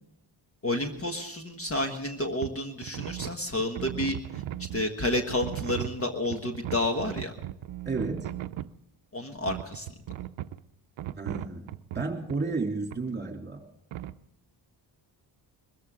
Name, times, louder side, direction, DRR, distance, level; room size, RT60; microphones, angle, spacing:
voice 1, 0.6-7.3 9.1-9.9, left 1 dB, 30° left, 4 dB, 1.5 m, -30 dB
sound 1, 2.4-2.6 2.8-4.9 5.3-8.7 9.5-10.6 11.0-12.4 12.9-13.0 13.9-14.2, right 13 dB, 85° right, 0.7 m, -37 dB
voice 2, 7.8-8.3 11.2-13.6, right 3 dB, 20° right, 2 dB, 2.9 m, -32 dB
22.0 x 14.5 x 3.7 m, 0.81 s
wide cardioid pair, 115°, 45 cm